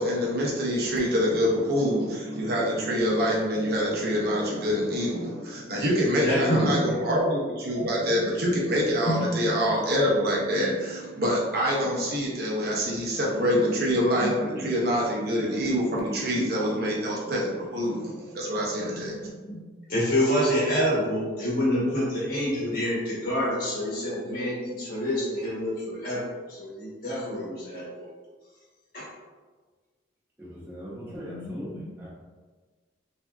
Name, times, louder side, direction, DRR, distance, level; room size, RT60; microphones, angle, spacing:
voice 1, 0.0-19.3, equal, 55° right, -4 dB, 0.7 m, -26 dB
voice 2, 6.2-6.9 7.8-7.9 9.1-9.5 11.8-11.9 14.2-14.3 14.6-14.7 15.2-15.3 16.3-16.4 17.3-17.4 19.5-19.6 19.9-26.2 26.5-27.9 28.9-29.0 31.0-32.1, equal, 45° left, -6 dB, 1.0 m, -27 dB
voice 3, 30.4-32.1, equal, 10° right, -7 dB, 0.7 m, -40 dB
3.4 x 2.6 x 2.3 m, 1.4 s
head